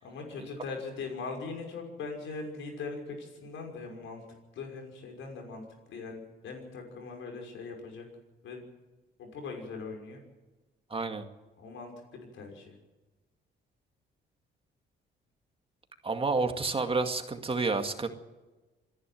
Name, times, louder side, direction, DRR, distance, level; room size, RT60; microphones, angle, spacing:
voice 1, 0.0-4.3 4.5-8.1 8.4-8.6 9.2-10.2 11.6-12.8, left 4 dB, 80° left, 3 dB, 6.0 m, -41 dB
voice 2, 10.9-11.2 16.0-18.1, right 3 dB, 30° right, 5 dB, 2.2 m, -29 dB
26.5 x 11.0 x 9.3 m, 1.2 s
cardioid pair, 90°, 20 cm